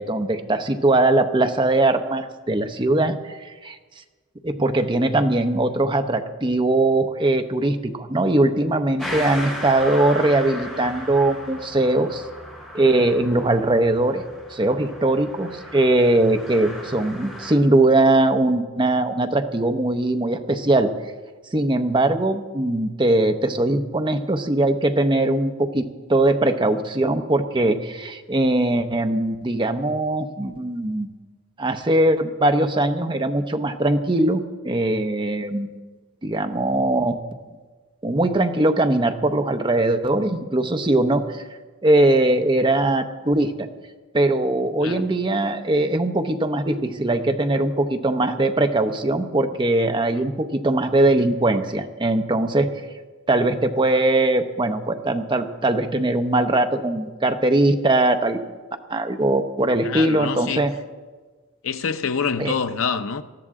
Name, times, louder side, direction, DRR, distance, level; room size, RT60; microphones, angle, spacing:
voice 1, 0.0-3.4 3.6-3.8 4.4-12.2 12.7-14.2 14.5-20.9 21.5-31.1 31.6-35.7 36.2-37.2 38.0-41.4 41.8-43.7 44.1-52.7 53.3-58.4 58.9-60.7 62.4-62.6, right 2 dB, 20° right, 0.7 m, -21 dB
sound 1, 9.0-17.5, left 1 dB, 5° left, 4.2 m, -36 dB
voice 2, 59.8-60.7 61.6-63.2, left 6 dB, 70° left, 0.6 m, -26 dB
19.5 x 13.0 x 3.7 m
head